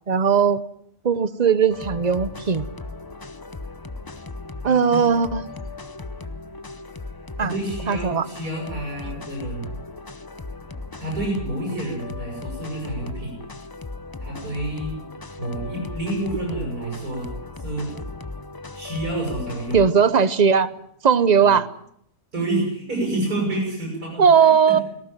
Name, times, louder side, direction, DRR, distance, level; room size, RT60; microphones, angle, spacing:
voice 1, 0.1-0.6 1.0-2.6 4.6-5.5 7.4-7.5 7.9-8.2 19.7-20.7 21.0-21.7 24.2-24.8, right 6 dB, 35° right, 15 dB, 0.8 m, -18 dB
sound 1, 1.7-19.9, left 3 dB, 25° left, 0.5 m, -36 dB
voice 2, 4.6-5.0 7.4-9.7 11.0-13.4 14.2-15.0 15.4-17.3 17.6-17.9 18.7-19.8 21.4-21.6 22.3-24.8, right 1 dB, 85° right, -3 dB, 8.7 m, -29 dB
19.0 x 18.0 x 9.0 m, 0.70 s
omnidirectional pair, 1.6 m